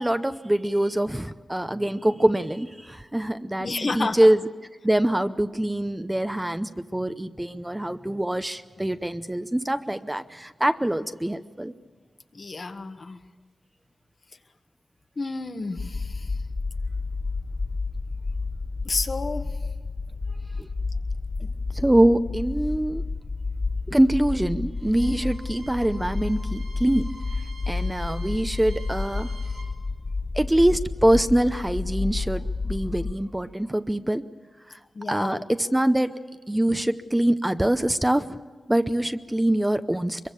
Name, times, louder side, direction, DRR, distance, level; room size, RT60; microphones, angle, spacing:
voice 1, 0.0-4.4 4.8-11.7 20.6-20.7 21.7-23.0 23.9-27.1 27.7-29.3 30.3-34.3 34.7-34.8 35.1-36.1 36.5-38.4 38.7-40.2, right 1 dB, 10° right, 10 dB, 0.7 m, -24 dB
voice 2, 3.6-4.2 12.3-13.2 15.2-16.3 18.8-19.5 21.4-21.5 34.9-35.4, left 3 dB, 50° left, 7 dB, 1.5 m, -30 dB
sound 1, 15.8-33.1, left 3 dB, 35° left, 0.7 m, -30 dB
Bowed string instrument, 24.7-29.7, right 3 dB, 85° right, 7.9 m, -48 dB
23.5 x 22.5 x 6.9 m, 1.5 s
cardioid pair, 70°, 0 cm